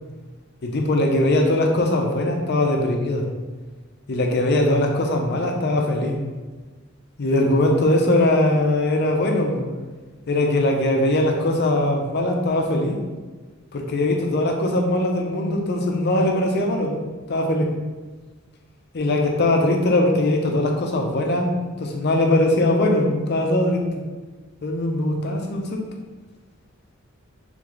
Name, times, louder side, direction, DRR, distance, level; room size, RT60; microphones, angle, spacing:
voice 1, 0.6-3.2 4.1-6.2 7.2-9.6 10.3-13.0 13.7-17.0 17.3-17.7 18.9-21.5 21.8-23.8 24.6-25.8, left 1 dB, 55° left, 2 dB, 0.6 m, -21 dB
3.4 x 3.2 x 3.9 m, 1.3 s
head